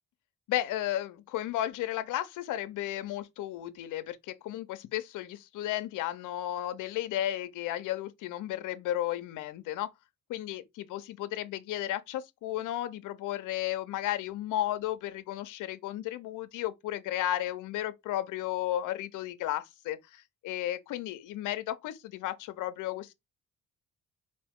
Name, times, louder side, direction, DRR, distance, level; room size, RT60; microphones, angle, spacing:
voice 1, 0.5-9.9 10.3-23.1, left 13 dB, 85° left, 0.6 m, -34 dB
4.3 x 2.6 x 3.5 m
cardioid pair, 90°, 30 cm